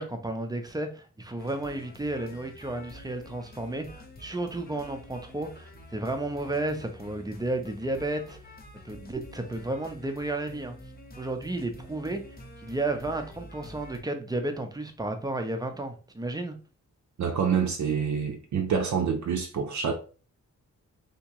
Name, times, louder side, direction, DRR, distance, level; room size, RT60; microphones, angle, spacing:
voice 1, 0.0-8.4 8.8-10.7 11.2-12.2 12.6-16.6, right 2 dB, 15° right, 0.5 m, -32 dB
sound 1, 1.4-14.0, left 1 dB, 30° left, 0.7 m, -48 dB
voice 2, 17.2-19.9, right 6 dB, 65° right, 0.6 m, -27 dB
3.5 x 2.9 x 2.9 m
wide cardioid pair, 135°, 31 cm